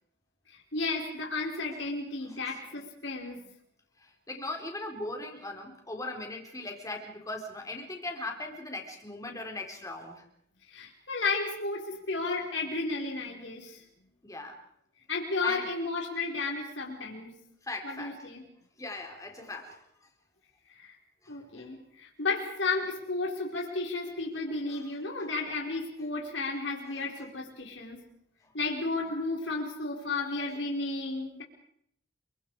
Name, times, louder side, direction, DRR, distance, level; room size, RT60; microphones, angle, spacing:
voice 1, 0.5-3.4 10.7-13.8 15.1-17.3 17.8-18.4 20.7-21.0 21.3-28.0 28.5-31.4, left 3 dB, 75° left, 0 dB, 4.9 m, -33 dB
voice 2, 4.0-10.3 14.2-14.6 15.4-15.7 17.6-18.3 18.8-19.8 21.2-21.7 24.7-24.8 27.0-27.1, left 2 dB, 20° left, 2 dB, 4.4 m, -39 dB
28.5 x 24.0 x 5.0 m, 0.70 s
head